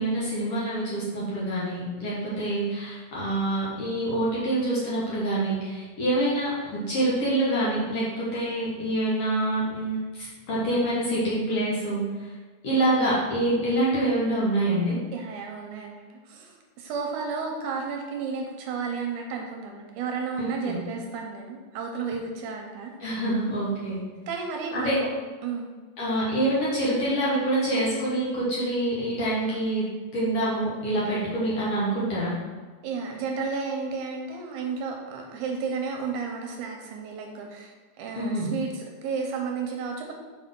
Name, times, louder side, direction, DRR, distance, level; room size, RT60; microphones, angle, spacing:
voice 1, 0.0-12.3 12.6-15.0 20.4-20.8 23.0-24.0 24.7-25.0 26.0-29.8 30.1-32.3 38.1-38.5, right 1 dB, 55° left, -7 dB, 1.9 m, -26 dB
voice 2, 15.1-23.3 24.3-25.1 25.4-25.7 32.8-40.1, right 5 dB, 80° right, 1 dB, 2.0 m, -32 dB
5.8 x 4.7 x 3.7 m, 1.4 s
omnidirectional pair, 3.8 m